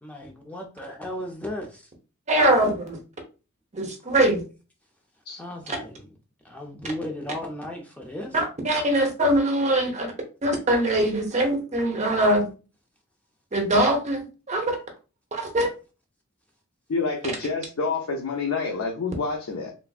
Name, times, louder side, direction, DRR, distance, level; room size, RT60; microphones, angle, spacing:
voice 1, 0.0-1.8 5.3-6.0 6.4-8.4, left 1 dB, 5° left, 1 dB, 0.4 m, -35 dB
voice 2, 2.3-3.0 3.7-4.4 5.7-5.8 8.3-10.1 10.4-12.5 13.5-14.8 15.3-15.7, right 1 dB, 30° right, 3 dB, 0.7 m, -22 dB
voice 3, 16.9-19.7, left 4 dB, 70° left, 0 dB, 0.5 m, -28 dB
3.2 x 2.5 x 2.3 m, 0.33 s
head